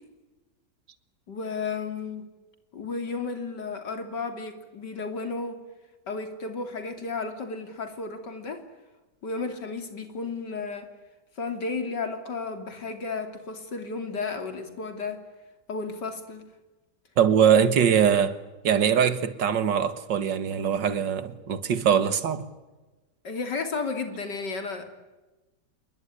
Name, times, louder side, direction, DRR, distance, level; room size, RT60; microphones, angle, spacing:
voice 1, 1.3-2.2 2.7-5.6 6.1-8.6 9.2-10.9 11.4-15.2 15.7-16.4 23.2-25.0, left 4 dB, 75° left, 3.6 m, -33 dB
voice 2, 17.2-18.4 18.6-22.4, right 8 dB, 90° right, 2.1 m, -22 dB
28.0 x 21.5 x 9.9 m
omnidirectional pair, 1.9 m